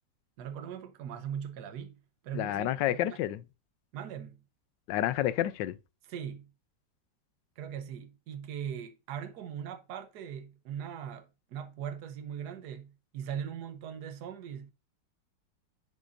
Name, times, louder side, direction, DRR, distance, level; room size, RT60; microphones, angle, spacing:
voice 1, 0.4-3.2 3.9-4.4 6.1-6.5 7.6-14.7, right 8 dB, 65° right, 1.4 m, -40 dB
voice 2, 2.3-3.4 4.9-5.8, left 13 dB, 80° left, 1.2 m, -29 dB
6.9 x 6.7 x 2.6 m
omnidirectional pair, 2.0 m